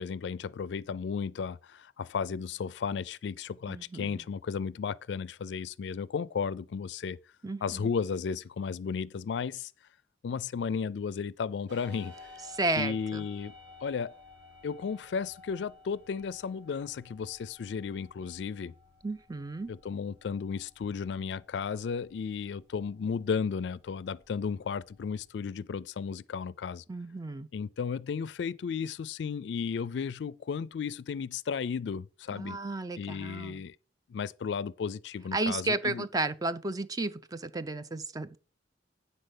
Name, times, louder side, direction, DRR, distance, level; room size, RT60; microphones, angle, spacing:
voice 1, 0.0-7.2 7.6-9.7 10.2-12.1 12.8-13.5 13.8-14.2 14.6-18.7 19.7-26.8 27.5-32.6 33.0-33.8 34.1-36.1, left 6 dB, 70° left, 0.4 m, -34 dB
voice 2, 3.7-4.2 7.4-7.9 12.5-13.2 19.0-19.7 26.9-27.5 32.3-33.6 35.3-38.4, right 2 dB, 20° right, 0.4 m, -33 dB
sound 1, 11.7-25.3, left 3 dB, 85° right, 2.7 m, -55 dB
9.7 x 4.0 x 6.5 m
head